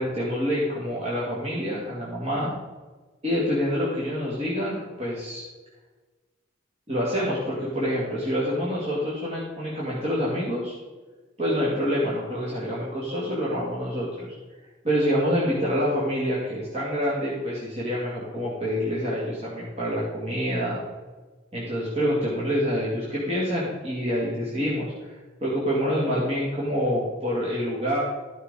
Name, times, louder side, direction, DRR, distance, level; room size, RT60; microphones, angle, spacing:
voice 1, 0.0-2.5 3.2-5.5 6.9-10.8 11.4-14.4 14.8-20.8 21.5-25.1 25.4-28.0, equal, 30° right, -7 dB, 2.0 m, -27 dB
13.0 x 6.2 x 4.0 m, 1.3 s
head